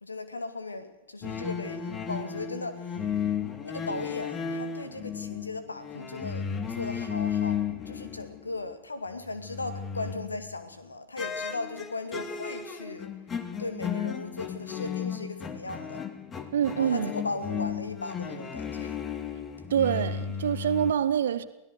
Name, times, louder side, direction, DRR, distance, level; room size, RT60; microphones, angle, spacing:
voice 1, 0.0-3.1 3.6-13.1 13.6-16.1 16.7-19.0, left 3 dB, 80° left, 2.2 m, -37 dB
sound 1, 1.2-8.7 9.1-10.6 11.2-20.9, left 7 dB, 25° left, 2.1 m, -34 dB
voice 2, 16.5-17.1 19.7-21.4, right 9 dB, 65° right, 1.1 m, -26 dB
23.5 x 17.0 x 6.6 m
figure-of-eight pair, 90°, 0 cm